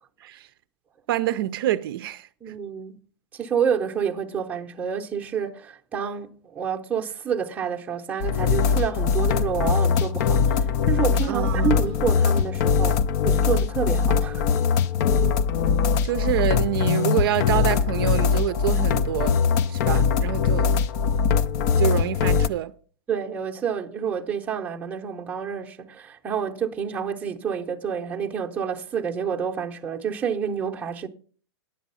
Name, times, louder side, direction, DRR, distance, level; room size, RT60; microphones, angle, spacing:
voice 1, 1.1-2.3 11.2-11.8 16.0-19.4 19.7-20.7 21.8-22.7, right 13 dB, 50° right, 0.5 m, -26 dB
voice 2, 2.4-3.0 3.3-14.5 23.1-31.1, right 7 dB, 10° right, 0.7 m, -28 dB
sound 1, 8.2-22.5, left 6 dB, 40° left, 0.5 m, -21 dB
9.7 x 7.2 x 5.5 m
hypercardioid pair, 150°, 15 cm